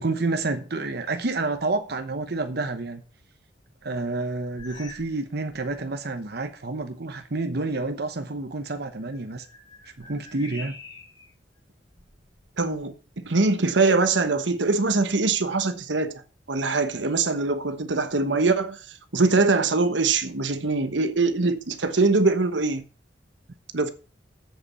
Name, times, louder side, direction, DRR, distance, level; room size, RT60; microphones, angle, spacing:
voice 1, 0.0-3.0 3.8-9.5 10.0-10.8, right 3 dB, 60° right, 0.9 m, -29 dB
sound 1, 4.6-5.2 5.5-5.8 6.5-6.6 9.0-11.3 11.9-12.9, left 3 dB, 25° left, 2.0 m, -46 dB
voice 2, 12.6-12.9 13.2-16.2 16.5-18.8 19.1-22.8 23.7-23.9, right 3 dB, 80° right, 1.1 m, -22 dB
7.8 x 7.1 x 7.0 m
head